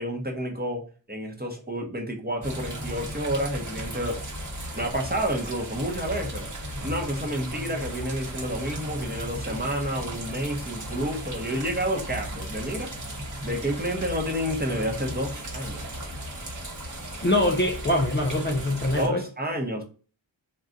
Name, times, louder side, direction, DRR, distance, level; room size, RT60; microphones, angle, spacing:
voice 1, 0.0-4.3 4.7-6.4 6.8-12.9 13.4-16.0 19.0-19.8, equal, 20° right, 0.8 m, -30 dB
sound 1, 2.4-19.1, right 1 dB, 40° right, 1.0 m, -36 dB
voice 2, 17.2-19.2, left 1 dB, 25° left, 0.4 m, -23 dB
2.4 x 2.3 x 3.8 m
wide cardioid pair, 45°, 47 cm